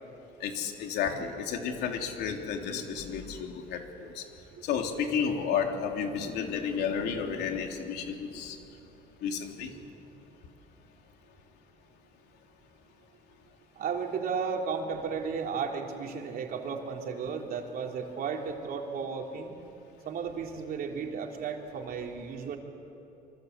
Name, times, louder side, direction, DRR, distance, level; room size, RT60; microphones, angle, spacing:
voice 1, 0.4-4.2 4.6-8.6 9.2-9.7, left 7 dB, 80° left, 3 dB, 3.4 m, -32 dB
voice 2, 13.8-19.5 20.1-22.6, right 6 dB, 60° right, 2 dB, 3.4 m, -34 dB
27.0 x 23.5 x 8.2 m, 2.8 s
cardioid pair, 110°, 17 cm